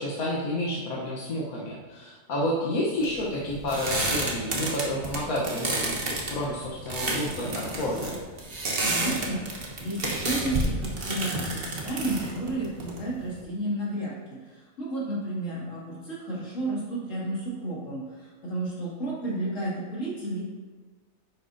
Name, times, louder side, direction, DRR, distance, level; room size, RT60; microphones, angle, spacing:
voice 1, 0.0-8.2, left 1 dB, 90° left, -5 dB, 1.5 m, -30 dB
sound 1, 3.0-13.4, right 2 dB, 45° right, 1.4 m, -31 dB
voice 2, 8.8-20.4, right 1 dB, 65° left, -7 dB, 2.9 m, -32 dB
10.0 x 7.7 x 2.7 m, 1.4 s
omnidirectional pair, 1.4 m